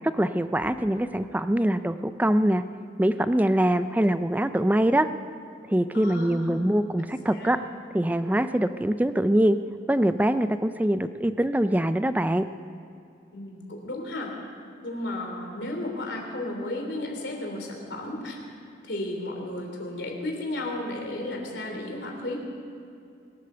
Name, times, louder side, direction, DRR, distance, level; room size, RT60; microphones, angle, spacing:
voice 1, 0.1-2.6 3.0-5.1 5.7-7.6 7.9-9.6 9.9-12.5, right 1 dB, 10° right, 11 dB, 0.4 m, -23 dB
voice 2, 5.9-6.6 7.3-7.8 13.3-14.3 14.8-18.4 18.8-22.4, left 1 dB, 70° left, 1 dB, 3.3 m, -33 dB
24.5 x 8.3 x 6.8 m, 2.5 s
head